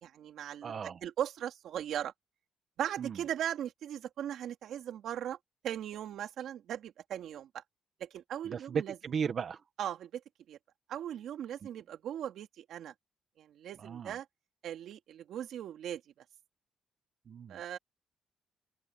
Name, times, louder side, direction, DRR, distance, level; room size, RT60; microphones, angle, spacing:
voice 1, 0.0-0.7 1.0-2.1 2.8-5.4 5.6-7.6 8.0-9.0 9.8-10.2 10.5-10.6 10.9-12.9 13.4-14.2 14.6-16.0 17.5-17.8, right 10 dB, 75° right, 2.9 m, -38 dB
voice 2, 0.6-1.0 3.0-3.2 8.4-9.6 13.8-14.1 17.3-17.6, right 6 dB, 50° right, 1.6 m, -36 dB
open air
cardioid pair, 90°, 0 cm